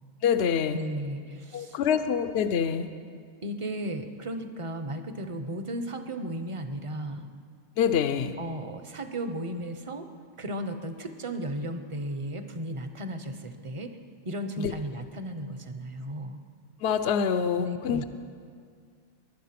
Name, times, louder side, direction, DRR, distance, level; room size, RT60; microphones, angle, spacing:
voice 1, 0.2-0.8 1.5-2.9 7.8-8.3 14.6-14.7 16.8-18.0, left 7 dB, 60° left, 9 dB, 0.9 m, -26 dB
voice 2, 0.7-1.8 3.4-7.3 8.4-10.1 10.4-13.9 14.2-16.4 17.6-18.0, right 1 dB, 30° right, 8 dB, 0.7 m, -35 dB
20.5 x 10.5 x 5.8 m, 2.1 s
omnidirectional pair, 1.3 m